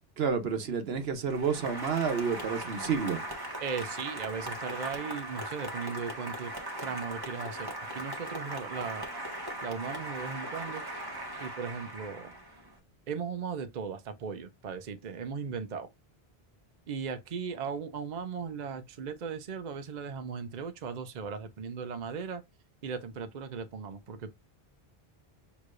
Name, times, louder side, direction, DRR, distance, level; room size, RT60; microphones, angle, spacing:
voice 1, 0.2-3.2, right 6 dB, 75° right, 1.1 m, -30 dB
Applause, 1.2-12.7, right 1 dB, 20° right, 1.2 m, -39 dB
voice 2, 3.6-6.5 6.8-9.1 9.6-11.1 11.4-12.3 13.1-15.9 16.9-22.4 22.8-24.3, right 6 dB, 50° right, 0.7 m, -37 dB
6.4 x 3.0 x 2.5 m
omnidirectional pair, 1.0 m